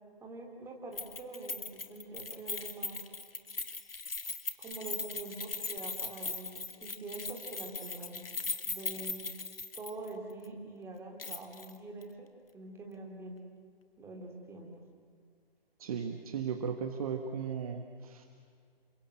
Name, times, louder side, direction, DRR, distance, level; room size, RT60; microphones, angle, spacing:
voice 1, 0.2-3.0 4.6-8.3 8.6-9.3 9.7-13.4 14.0-14.7, right 2 dB, 10° right, 0 dB, 3.2 m, -45 dB
Keys jangling, 1.0-10.1 10.4-10.5 11.2-11.7 12.0-12.1, left 4 dB, 70° left, 1.9 m, -39 dB
voice 2, 15.8-18.3, right 6 dB, 35° right, 5 dB, 1.7 m, -36 dB
28.5 x 24.0 x 7.9 m, 2.1 s
figure-of-eight pair, 135°, 30 cm